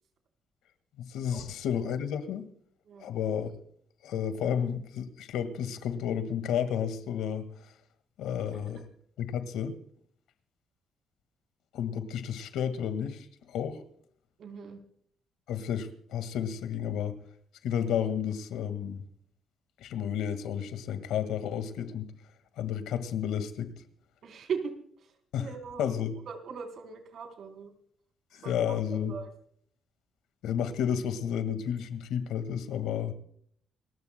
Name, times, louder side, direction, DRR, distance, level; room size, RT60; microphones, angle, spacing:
voice 1, 1.0-2.5 3.0-3.5 4.0-7.5 8.2-8.8 9.2-9.8 11.7-13.8 15.5-17.2 17.6-19.0 19.8-22.1 22.6-23.7 25.3-25.5 25.8-26.1 28.3-29.1 30.4-33.1, left 8 dB, 85° left, 1.8 m, -31 dB
voice 2, 14.4-14.8 24.2-24.7 25.0-25.1 25.4-26.0 26.3-27.7 28.4-29.3, right 6 dB, 65° right, 3.8 m, -39 dB
29.0 x 14.0 x 2.2 m
cardioid pair, 90°, 0 cm